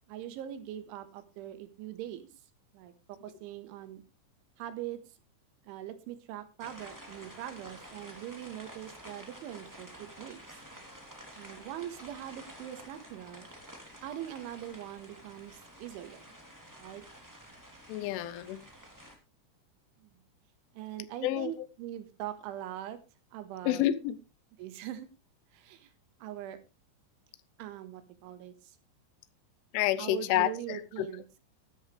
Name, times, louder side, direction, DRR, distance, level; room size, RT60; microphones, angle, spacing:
voice 1, 0.1-2.3 2.7-4.0 4.6-5.0 5.7-10.4 11.4-13.5 14.0-16.2 16.8-17.0 20.0-20.1 20.7-23.0 23.3-23.9 24.6-25.1 25.5-25.9 26.2-26.6 27.6-28.8 30.0-31.2, right 12 dB, 80° right, 10 dB, 3.7 m, -42 dB
sound 1, 6.6-19.2, equal, 5° right, 1.6 m, -50 dB
voice 2, 17.9-18.6 21.2-21.5 23.7-24.2 29.7-30.5, left 13 dB, 80° left, 15 dB, 3.2 m, -28 dB
13.5 x 12.5 x 3.3 m, 0.27 s
omnidirectional pair, 5.6 m